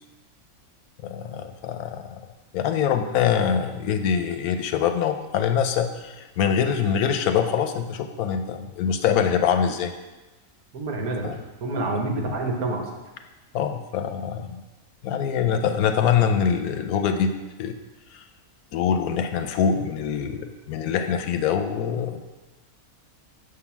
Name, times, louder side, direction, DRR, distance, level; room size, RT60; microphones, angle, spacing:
voice 1, 1.0-2.2 2.5-9.9 11.2-11.4 13.5-14.6 15.0-17.3 17.6-17.8 18.1-18.2 18.7-22.2, left 7 dB, 85° left, 7 dB, 1.1 m, -24 dB
voice 2, 10.7-12.8, right 2 dB, 80° right, 1 dB, 1.5 m, -28 dB
6.2 x 3.9 x 5.9 m, 1.1 s
omnidirectional pair, 1.6 m